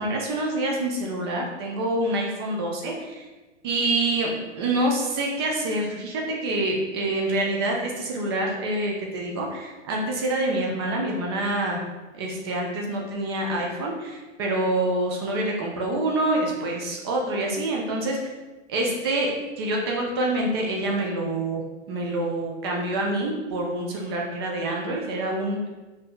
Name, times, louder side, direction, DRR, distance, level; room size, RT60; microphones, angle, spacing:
voice 1, 0.0-3.2 3.6-11.8 12.1-18.2 18.7-19.3 19.6-21.6 21.9-25.6, right 1 dB, 20° right, 0 dB, 0.4 m, -26 dB
5.3 x 2.8 x 2.3 m, 1.2 s
figure-of-eight pair, 105°, 39 cm